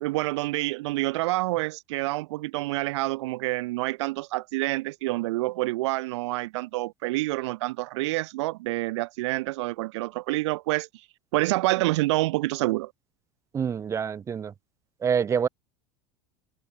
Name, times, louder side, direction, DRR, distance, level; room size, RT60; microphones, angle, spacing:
voice 1, 0.0-10.9 11.3-12.9, right 20 dB, 90° right, 0.4 m, -27 dB
voice 2, 13.5-14.5 15.0-15.5, right 7 dB, 20° right, 1.1 m, -26 dB
supercardioid pair, 145°, 14 cm